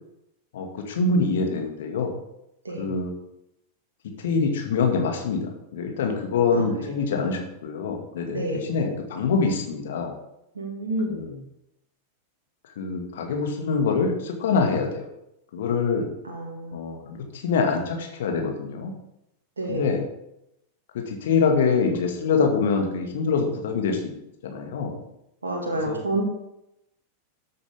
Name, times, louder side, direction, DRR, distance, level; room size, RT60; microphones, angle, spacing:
voice 1, 0.5-2.1 2.8-3.1 4.2-10.1 11.1-11.3 12.8-15.1 15.5-16.1 16.7-18.9 19.7-20.0 20.9-24.1 24.4-25.0 25.9-26.0, left 4 dB, 60° left, 3 dB, 2.1 m, -25 dB
voice 2, 6.5-7.0 8.3-8.7 10.6-11.4 16.2-16.8 19.6-20.0 25.4-26.2, right 1 dB, 75° right, 0 dB, 2.2 m, -29 dB
13.5 x 7.8 x 3.7 m, 0.85 s
figure-of-eight pair, 90°, 0 cm